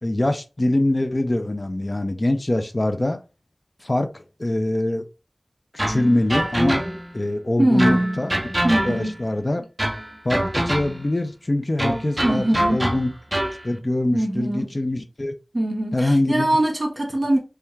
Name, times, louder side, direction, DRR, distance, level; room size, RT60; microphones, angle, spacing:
voice 1, 0.0-3.2 3.8-5.0 5.9-6.8 7.1-8.3 8.8-9.7 10.2-13.1 13.6-15.3 15.9-16.5, left 1 dB, 45° left, 0.6 m, -23 dB
sound 1, 5.8-7.2 7.8-9.3 9.8-11.1 11.8-13.6, right 1 dB, 20° right, 0.7 m, -25 dB
voice 2, 7.6-8.2 8.6-9.2 12.2-12.9 14.1-14.7 15.5-17.4, right 1 dB, 40° right, 1.4 m, -22 dB
3.4 x 3.4 x 3.2 m
wide cardioid pair, 55°, 0 cm